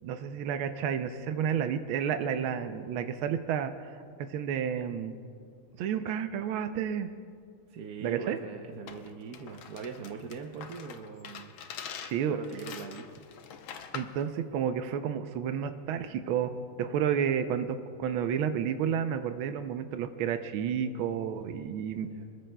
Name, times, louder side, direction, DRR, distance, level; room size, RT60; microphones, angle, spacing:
voice 1, 0.0-5.2 5.8-7.1 8.0-8.4 12.0-12.4 13.9-16.5 16.8-22.1, right 8 dB, 85° right, 8 dB, 1.6 m, -31 dB
voice 2, 7.7-11.5 12.3-13.2 22.0-22.2, right 5 dB, 60° right, 2 dB, 1.2 m, -41 dB
sound 1, 8.9-14.2, left 7 dB, 80° left, 1.7 m, -44 dB
28.5 x 21.0 x 2.3 m, 2.4 s
omnidirectional pair, 2.2 m